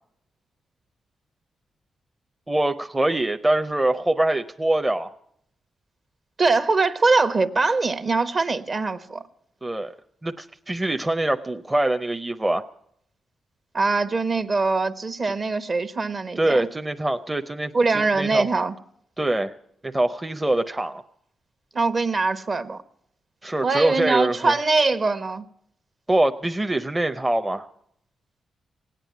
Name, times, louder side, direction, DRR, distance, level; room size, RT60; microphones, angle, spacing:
voice 1, 2.5-5.1 9.6-9.9 10.2-12.6 15.2-15.3 16.4-17.7 18.2-18.5 19.2-19.5 19.8-21.0 23.4-24.5 26.1-27.7, right 1 dB, 15° right, 6 dB, 0.6 m, -24 dB
voice 2, 6.4-9.2 13.7-16.6 17.7-18.7 21.7-22.8 23.6-25.4, right 3 dB, 45° right, 10 dB, 1.0 m, -22 dB
17.5 x 9.0 x 9.2 m, 0.71 s
cardioid pair, 80°, 0 cm